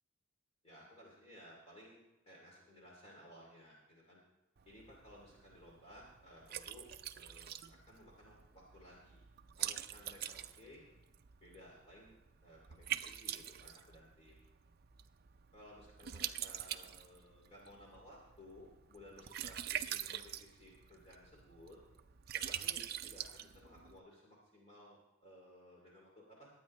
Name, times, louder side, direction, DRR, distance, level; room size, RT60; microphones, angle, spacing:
voice 1, 0.6-4.2 4.7-6.9 7.1-7.6 7.9-9.3 9.6-10.8 11.4-12.1 12.4-14.4 15.5-21.8 22.3-26.5, left 1 dB, 30° left, -3 dB, 2.7 m, -58 dB
Liquid, 4.6-24.0, right 11 dB, 50° right, 0.5 m, -45 dB
22.0 x 9.0 x 3.2 m, 1.0 s
head